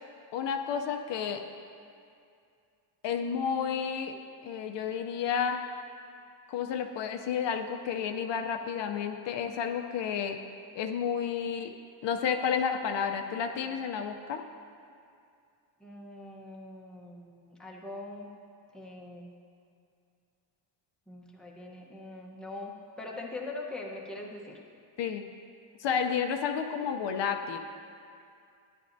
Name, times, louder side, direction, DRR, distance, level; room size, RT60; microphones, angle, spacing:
voice 1, 0.3-1.4 3.0-4.2 4.4-5.6 6.5-10.4 10.8-11.7 12.0-14.4 25.0-25.3 25.8-27.6, left 7 dB, 65° left, 5 dB, 0.6 m, -31 dB
voice 2, 15.8-18.3 18.7-19.3 21.1-24.6, left 2 dB, ahead, -3 dB, 0.9 m, -42 dB
13.5 x 10.5 x 2.6 m, 2.4 s
cardioid pair, 155°, 46 cm